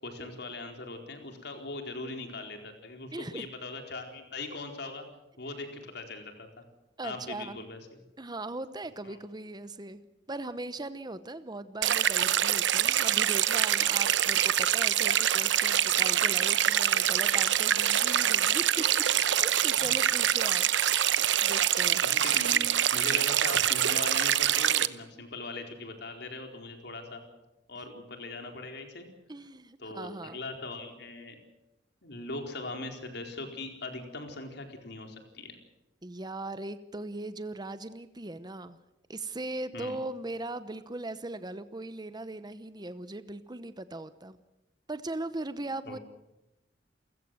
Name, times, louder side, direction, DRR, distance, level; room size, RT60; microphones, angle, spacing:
voice 1, 0.0-5.0 5.4-6.6 7.0-8.0 9.0-9.2 19.8-19.9 22.0-22.6 22.9-27.2 27.7-29.1 29.8-31.4 32.0-35.5 39.7-40.0 45.9-46.0, left 2 dB, 65° left, 4 dB, 4.4 m, -40 dB
voice 2, 3.1-3.5 7.0-7.6 8.2-10.0 10.3-20.7 21.2-22.0 29.3-30.4 36.0-38.8 39.1-44.4 44.9-46.0, right 2 dB, 25° right, 12 dB, 0.9 m, -39 dB
sound 1, 11.8-24.9, right 10 dB, 80° right, 0.9 m, -25 dB
29.0 x 16.0 x 7.8 m, 0.95 s
head